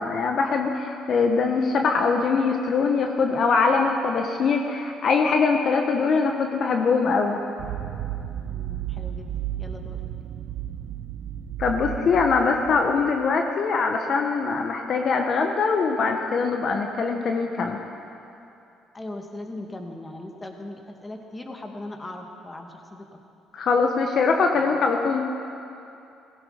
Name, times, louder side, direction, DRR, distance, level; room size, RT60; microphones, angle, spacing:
voice 1, 0.0-7.4 11.6-17.8 23.5-25.2, left 4 dB, 55° left, 3 dB, 1.2 m, -22 dB
sound 1, 7.6-13.3, right 11 dB, 70° right, 0.8 m, -33 dB
voice 2, 8.5-9.3 9.6-10.0 18.9-23.2, left 1 dB, 20° left, 3 dB, 2.1 m, -39 dB
16.0 x 15.5 x 5.3 m, 2.7 s
supercardioid pair, 65°, 0 cm